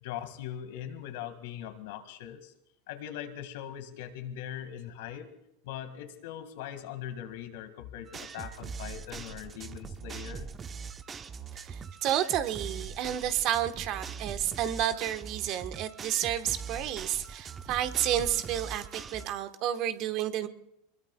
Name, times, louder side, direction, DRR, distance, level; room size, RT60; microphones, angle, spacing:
voice 1, 0.0-2.5 2.9-5.3 5.6-10.5, left 10 dB, 70° left, 8 dB, 1.9 m, -41 dB
sound 1, 8.1-19.3, right 5 dB, 25° right, 0.7 m, -42 dB
voice 2, 11.7-20.5, right 11 dB, 50° right, 9 dB, 1.2 m, -30 dB
24.5 x 21.5 x 2.3 m, 0.80 s
hypercardioid pair, 100°, 0 cm